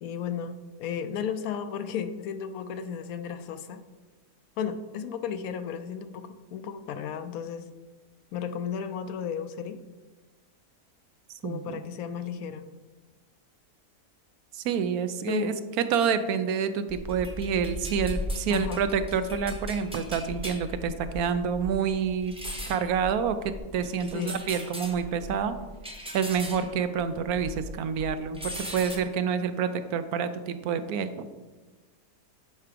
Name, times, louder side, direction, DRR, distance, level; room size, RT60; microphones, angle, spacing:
voice 1, 0.0-3.8 4.6-7.7 8.3-9.8 11.4-12.7 15.3-15.7 18.5-18.8 24.1-24.4, left 7 dB, 70° left, 10 dB, 1.0 m, -34 dB
voice 2, 11.4-11.8 14.5-22.3 22.7-25.6 26.1-31.2, right 7 dB, 75° right, 11 dB, 1.0 m, -28 dB
sound 1, 16.9-27.7 28.0-29.0, left 1 dB, 5° right, 0.7 m, -38 dB
9.7 x 4.6 x 5.1 m, 1.2 s
omnidirectional pair, 1.6 m